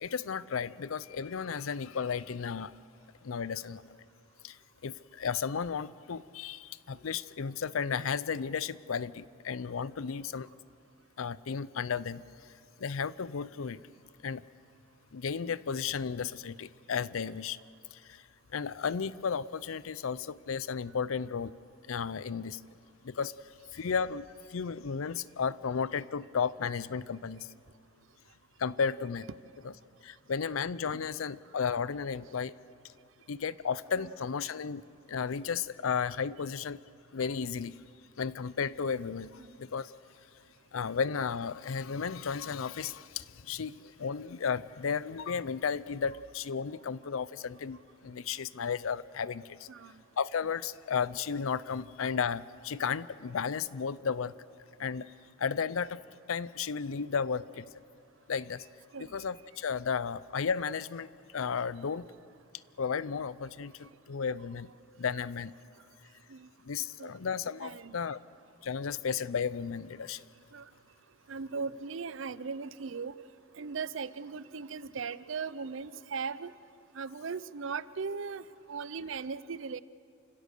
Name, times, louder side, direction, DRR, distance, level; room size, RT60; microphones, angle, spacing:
voice 1, 0.0-2.7 3.2-3.9 4.4-10.5 11.2-12.2 12.8-13.8 14.2-14.4 15.1-17.6 17.9-18.2 18.5-21.6 21.9-22.6 23.0-23.3 23.7-27.5 28.6-29.3 29.6-29.7 30.0-32.6 33.3-34.8 35.1-36.8 37.1-37.8 38.2-39.9 40.7-49.7 50.2-54.3 54.8-55.1 55.4-56.0 56.3-57.7 58.3-58.7 59.0-61.1 61.3-62.1 62.8-64.7 65.0-65.5 66.6-68.2 68.6-70.2, left 6 dB, 85° left, 18 dB, 0.5 m, -34 dB
voice 2, 49.7-50.0 58.9-59.2 66.3-66.5 67.0-67.1 67.6-68.1 70.5-70.7 71.3-73.1 73.5-76.5 76.9-79.8, right 5 dB, 65° right, 17 dB, 0.6 m, -38 dB
29.0 x 16.5 x 6.7 m, 2.4 s
head